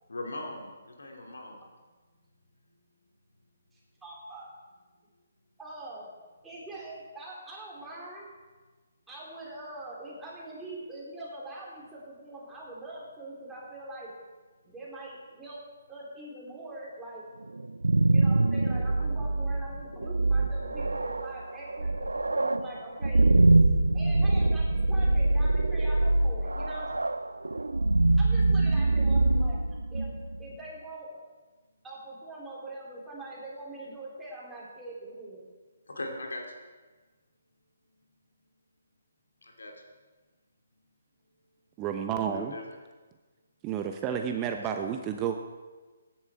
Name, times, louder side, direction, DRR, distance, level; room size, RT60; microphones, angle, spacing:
voice 1, 0.1-1.6 35.9-36.5 39.4-39.7 42.3-42.6 44.1-44.2, left 2 dB, 75° left, 2 dB, 2.8 m, -39 dB
voice 2, 3.7-4.5 5.6-6.1 6.4-8.3 9.1-14.1 14.6-15.6 15.9-17.3 18.1-23.4 23.9-26.9 28.2-29.6 29.9-30.1 30.4-31.2 31.8-35.4, right 2 dB, 5° right, -6 dB, 4.3 m, -43 dB
sound 1, 17.6-30.4, right 2 dB, 85° right, 0.6 m, -24 dB
voice 3, 41.8-42.5 43.6-45.4, right 8 dB, 25° right, 5 dB, 0.8 m, -31 dB
16.5 x 10.5 x 4.8 m, 1.3 s
figure-of-eight pair, 140°, 0 cm